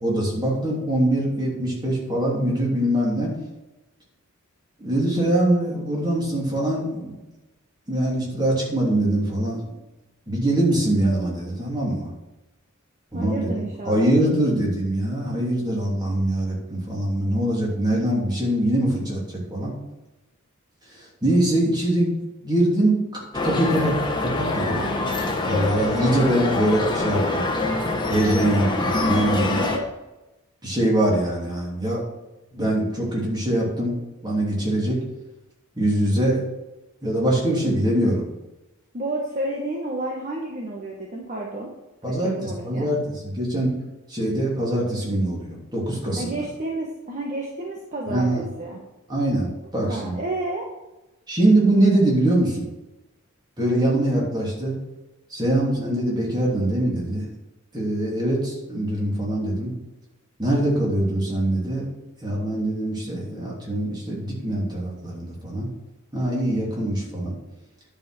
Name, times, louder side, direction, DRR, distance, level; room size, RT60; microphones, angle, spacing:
voice 1, 0.0-3.3 4.8-7.2 7.9-9.6 10.3-12.1 13.1-19.2 19.5-19.7 21.2-22.1 22.4-24.8 25.5-27.5 28.1-29.7 30.6-32.0 32.5-33.9 34.2-35.0 35.8-36.4 37.0-38.2 42.0-43.7 44.1-46.4 48.1-48.4 49.1-50.1 51.3-52.7 53.6-54.7 55.3-57.2 57.7-59.7 60.4-61.9 62.2-65.7 66.1-67.3, right 1 dB, 20° right, -4 dB, 2.9 m, -23 dB
voice 2, 13.1-14.1 38.9-41.7 42.1-42.9 46.2-48.3 48.6-48.8 49.9-50.6, right 1 dB, 35° right, -2 dB, 1.3 m, -30 dB
sound 1, 23.3-29.8, left 2 dB, 20° left, 1.2 m, -25 dB
10.5 x 5.1 x 6.0 m, 1.0 s
head